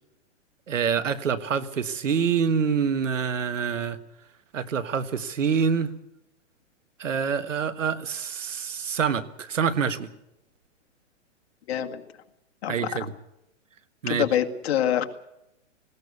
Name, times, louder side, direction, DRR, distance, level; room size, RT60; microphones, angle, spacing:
voice 1, 0.7-4.0 4.5-5.9 7.0-10.1 12.7-13.1 14.0-14.3, right 6 dB, 90° right, 13 dB, 1.6 m, -26 dB
voice 2, 11.7-12.0 12.6-12.9 14.1-15.0, left 10 dB, 55° left, 6 dB, 2.1 m, -25 dB
19.5 x 17.5 x 8.4 m, 0.85 s
hypercardioid pair, 145°, 37 cm